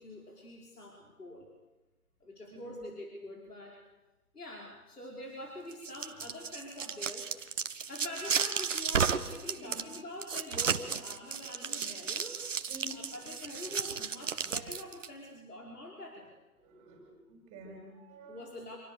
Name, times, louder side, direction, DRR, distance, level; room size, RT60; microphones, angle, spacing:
voice 1, 0.0-1.5 2.2-3.8 4.3-7.4 7.7-12.6 12.9-16.3 18.3-18.8, left 1 dB, 80° left, -1 dB, 5.6 m, -45 dB
voice 2, 2.5-2.9 9.5-9.9 12.7-12.9 16.6-18.5, equal, 15° right, 1 dB, 6.2 m, -50 dB
sound 1, 5.7-15.1, right 6 dB, 55° right, 1.7 m, -33 dB
27.5 x 24.0 x 7.0 m, 1.1 s
figure-of-eight pair, 155°, 45 cm